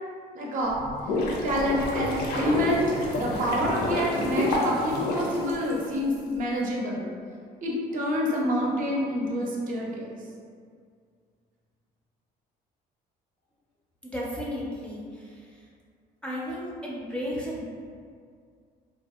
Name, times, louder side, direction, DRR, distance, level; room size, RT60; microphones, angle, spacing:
voice 1, 0.3-0.8 1.4-2.9 3.1-7.0 7.6-10.2, equal, 50° right, -3 dB, 0.5 m, -27 dB
sound 1, 0.7-6.1, left 1 dB, 70° left, 0.5 m, -29 dB
voice 2, 14.0-15.3 16.2-17.6, equal, 5° left, -6 dB, 0.4 m, -33 dB
2.7 x 2.0 x 2.2 m, 2.1 s
cardioid pair, 110°, 17 cm